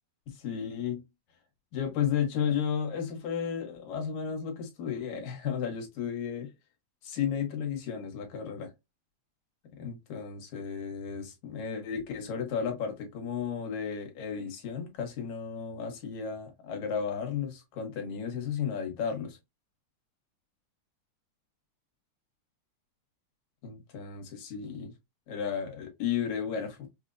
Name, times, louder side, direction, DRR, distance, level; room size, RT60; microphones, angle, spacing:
voice 1, 0.3-1.0 1.7-6.5 7.0-8.7 9.8-19.4 23.6-24.9 25.3-26.9, left 7 dB, 70° left, 2.2 m, -33 dB
5.8 x 2.0 x 2.5 m
omnidirectional pair, 3.6 m